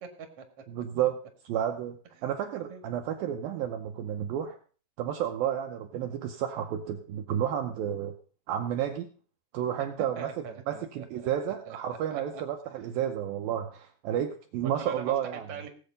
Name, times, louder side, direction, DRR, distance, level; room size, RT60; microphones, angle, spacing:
voice 1, 0.0-0.4 2.6-2.8 10.2-11.3 11.7-12.4 14.6-15.7, right 7 dB, 50° right, 5 dB, 2.0 m, -42 dB
voice 2, 0.7-1.2 1.4-4.6 5.0-8.1 8.5-9.1 9.5-10.3 10.7-15.5, right 10 dB, 75° right, 4 dB, 2.3 m, -31 dB
17.5 x 8.0 x 5.2 m, 0.41 s
omnidirectional pair, 4.8 m